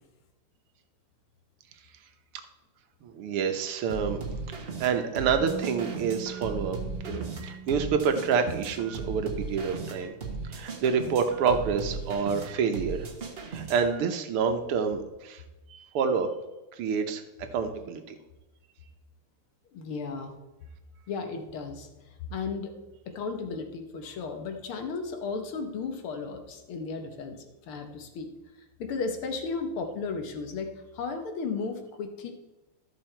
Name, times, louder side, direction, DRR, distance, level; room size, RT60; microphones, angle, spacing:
voice 1, 3.0-4.2 4.6-6.8 7.0-10.2 10.4-13.1 13.5-15.4 15.7-16.3 16.8-17.2 17.5-18.2, right 6 dB, 80° right, 7 dB, 1.9 m, -28 dB
sound 1, 3.9-14.0, right 4 dB, 35° right, 1.2 m, -37 dB
Bass guitar, 5.4-10.1 10.4-11.6, right 7 dB, 50° right, 1.0 m, -44 dB
voice 2, 19.7-20.3 21.1-21.9 22.3-22.7 23.1-28.3 28.8-32.3, left 4 dB, 75° left, 5 dB, 2.0 m, -34 dB
13.0 x 6.2 x 4.4 m, 1.0 s
omnidirectional pair, 2.4 m